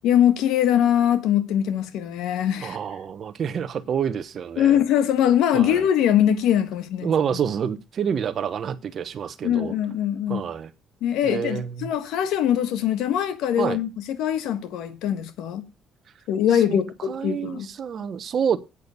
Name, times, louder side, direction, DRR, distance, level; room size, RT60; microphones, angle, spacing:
voice 1, 0.0-2.8 4.6-7.1 9.4-10.4 11.0-13.9 14.2-15.6 16.3-17.7, left 10 dB, 85° left, 1.4 m, -22 dB
voice 2, 2.6-4.8 5.5-5.9 7.0-9.7 10.3-10.7 11.2-11.9 13.6-13.8 16.5-18.6, right 7 dB, 50° right, 1.0 m, -28 dB
8.4 x 6.7 x 6.9 m
cardioid pair, 105°, 0 cm